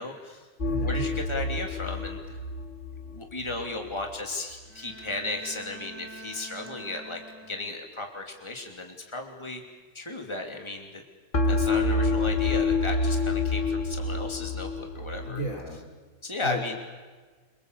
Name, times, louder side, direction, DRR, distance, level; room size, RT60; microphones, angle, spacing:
voice 1, 0.0-0.5 0.8-2.4 3.1-7.2 7.5-9.6 9.9-11.0 11.5-15.4 16.2-16.8, left 2 dB, 20° left, 2 dB, 3.1 m, -35 dB
voice 2, 0.6-1.0 15.2-15.8 16.4-16.8, equal, 70° left, 2 dB, 4.2 m, -33 dB
sound 1, 0.6-3.7 11.3-15.3, left 3 dB, 35° left, 2.1 m, -27 dB
Bowed string instrument, 4.6-8.0, right 2 dB, 10° right, 3.3 m, -46 dB
26.5 x 25.0 x 8.2 m, 1.4 s
omnidirectional pair, 1.5 m